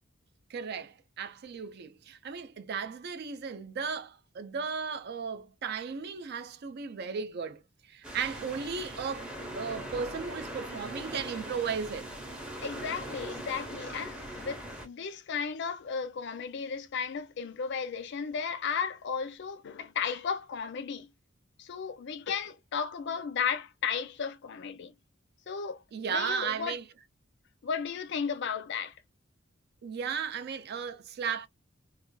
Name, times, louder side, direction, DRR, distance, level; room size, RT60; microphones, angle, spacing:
voice 1, 0.5-7.6 7.9-12.1 25.9-26.8 29.8-31.5, right 6 dB, 55° right, 0.4 m, -35 dB
sound 1, 8.0-14.9, right 1 dB, 5° right, 0.6 m, -41 dB
voice 2, 12.6-21.1 21.6-24.9 25.5-25.8 26.1-26.8 27.6-28.9, left 6 dB, 60° left, 0.5 m, -34 dB
2.4 x 2.3 x 2.3 m
head